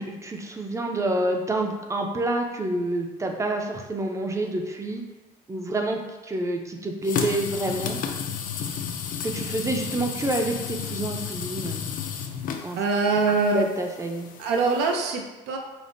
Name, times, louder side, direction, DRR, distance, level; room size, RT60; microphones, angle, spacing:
voice 1, 0.0-5.0 5.5-8.0 9.2-11.9 12.6-12.8 13.5-14.3, right 2 dB, 15° right, 3 dB, 0.4 m, -28 dB
sound 1, 7.0-14.9, left 7 dB, 55° left, 0.4 m, -32 dB
voice 2, 12.8-13.7 14.4-15.6, right 3 dB, 90° right, 2 dB, 0.5 m, -24 dB
5.1 x 2.0 x 2.5 m, 1.1 s
cardioid pair, 110°, 17 cm